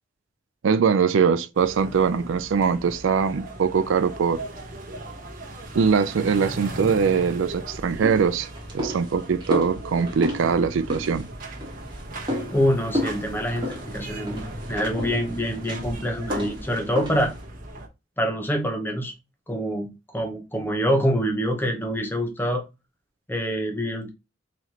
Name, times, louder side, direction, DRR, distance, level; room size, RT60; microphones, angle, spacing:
voice 1, 0.6-4.4 5.7-8.5 8.7-11.3, right 6 dB, 80° right, 0.4 m, -22 dB
sound 1, 1.5-17.9, right 1 dB, 45° right, 1.0 m, -37 dB
sound 2, 7.7-17.4, left 1 dB, 25° right, 1.3 m, -33 dB
voice 2, 12.5-17.3 18.2-19.1 19.5-19.9 20.1-22.6 23.3-24.1, equal, 10° left, 0.7 m, -25 dB
4.0 x 3.1 x 2.8 m
head